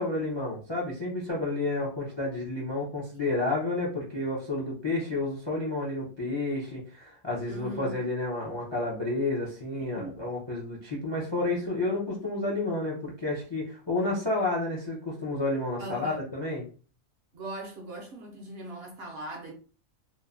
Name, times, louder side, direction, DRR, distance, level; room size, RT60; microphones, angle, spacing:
voice 1, 0.0-16.7, left 2 dB, 35° left, 0.4 m, -30 dB
voice 2, 7.4-8.0 9.9-10.3 15.8-16.2 17.3-19.5, right 1 dB, 55° right, 0.8 m, -40 dB
3.0 x 2.2 x 2.4 m
omnidirectional pair, 1.4 m